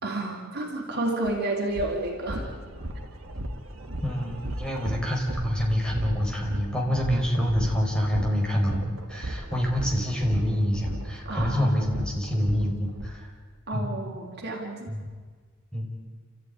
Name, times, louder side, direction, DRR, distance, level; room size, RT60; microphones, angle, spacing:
voice 1, 0.0-2.5 11.3-11.7 13.7-14.9, right 2 dB, 55° right, 0 dB, 3.5 m, -30 dB
sound 1, 1.2-1.3 1.7-13.1, right 1 dB, 70° right, 2.4 m, -35 dB
voice 2, 4.0-13.3 13.7-13.9 14.9-15.1 15.7-15.9, equal, 5° left, -1 dB, 4.8 m, -26 dB
29.5 x 14.0 x 9.6 m, 1.6 s
head